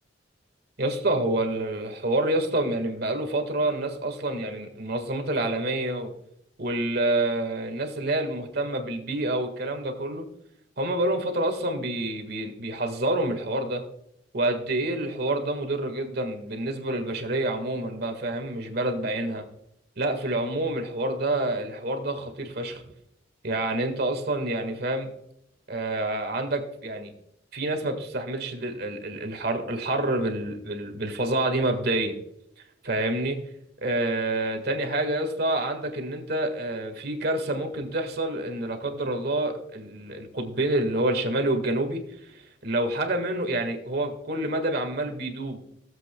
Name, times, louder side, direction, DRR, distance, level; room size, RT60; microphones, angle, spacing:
voice 1, 0.8-6.1 6.6-10.3 10.8-13.8 14.3-19.5 20.0-22.8 23.4-25.1 25.7-27.1 27.5-32.2 32.8-33.4 33.8-45.6, right 1 dB, 60° right, 5 dB, 1.7 m, -28 dB
16.5 x 7.9 x 2.3 m, 0.76 s
head